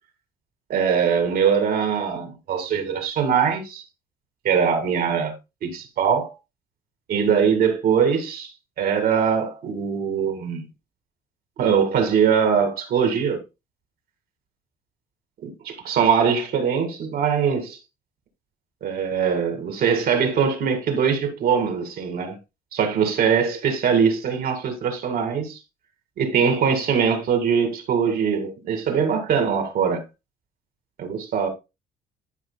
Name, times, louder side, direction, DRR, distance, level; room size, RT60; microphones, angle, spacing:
voice 1, 0.7-3.8 4.4-5.3 5.6-6.3 7.1-8.5 8.8-10.7 11.6-13.4 15.4-17.8 18.8-22.4 22.7-25.6 26.2-30.0 31.0-31.5, right 7 dB, 60° right, 2.0 m, -22 dB
12.0 x 5.3 x 2.2 m
cardioid pair, 110°, 17 cm